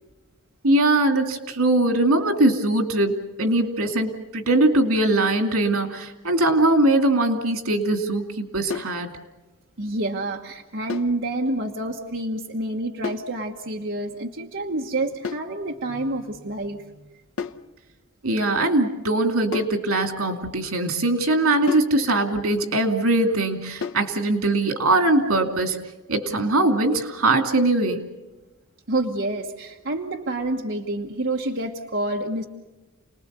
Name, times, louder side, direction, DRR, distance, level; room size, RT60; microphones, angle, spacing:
voice 1, 0.6-9.1 18.2-25.8 26.1-28.0, right 2 dB, 85° right, 6 dB, 2.6 m, -21 dB
sound 1, 8.7-9.0 10.9-11.2 13.0-13.3 15.2-15.5 17.4-17.7 19.5-19.8 21.7-22.0 23.8-24.1, left 5 dB, 70° left, 0.8 m, -32 dB
voice 2, 9.8-17.1 28.9-32.4, right 2 dB, 55° right, 0 dB, 1.4 m, -28 dB
29.5 x 20.0 x 6.8 m, 1.1 s
head